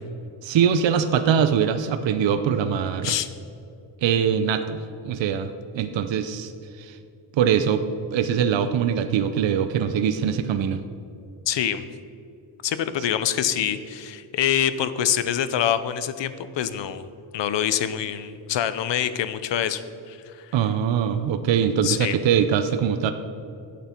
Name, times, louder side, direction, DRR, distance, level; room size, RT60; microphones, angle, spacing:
voice 1, 0.4-3.2 4.0-4.8 5.0-6.5 6.8-7.0 7.3-7.8 8.1-10.8 20.5-23.1, right 8 dB, 70° right, 9 dB, 0.7 m, -22 dB
voice 2, 11.5-11.9 12.6-17.1 17.3-19.8 20.1-20.5 21.8-22.2, left 10 dB, 65° left, 13 dB, 0.7 m, -25 dB
11.5 x 8.2 x 4.4 m, 2.6 s
cardioid pair, 100°, 47 cm